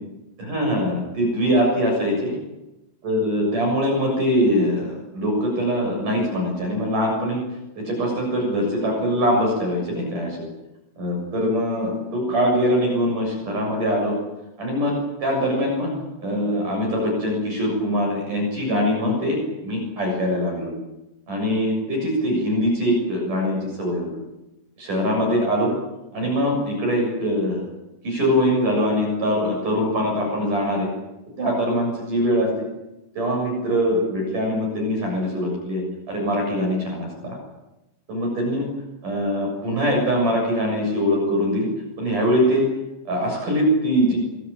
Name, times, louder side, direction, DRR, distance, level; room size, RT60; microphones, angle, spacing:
voice 1, 0.4-2.3 3.0-7.4 7.8-10.5 11.0-14.2 14.6-15.9 16.2-19.4 19.6-20.7 21.3-24.1 24.8-25.7 26.1-27.6 28.0-30.9 31.4-32.7 33.1-37.4 38.1-38.7 39.0-41.7 42.0-42.7 43.1-44.2, equal, 40° right, 1 dB, 8.5 m, -22 dB
25.5 x 22.0 x 8.8 m, 0.97 s
omnidirectional pair, 5.5 m